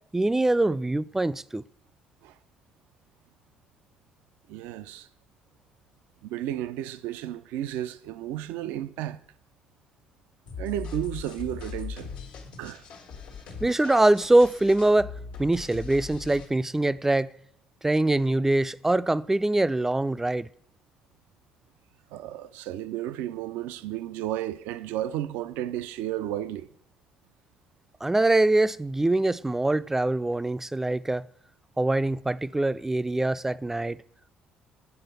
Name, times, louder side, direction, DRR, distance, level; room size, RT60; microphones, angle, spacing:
voice 1, 0.1-1.6 13.6-15.1 15.4-17.3 17.8-20.5 28.0-31.3 31.8-34.0, right 2 dB, 10° right, 0.3 m, -23 dB
voice 2, 4.5-5.1 6.2-9.2 10.6-12.1 12.6-12.9 22.1-26.7, right 12 dB, 80° right, 0.4 m, -33 dB
sound 1, 10.5-16.5, left 5 dB, 85° left, 1.4 m, -40 dB
7.8 x 4.0 x 6.6 m
supercardioid pair, 70°, 3 cm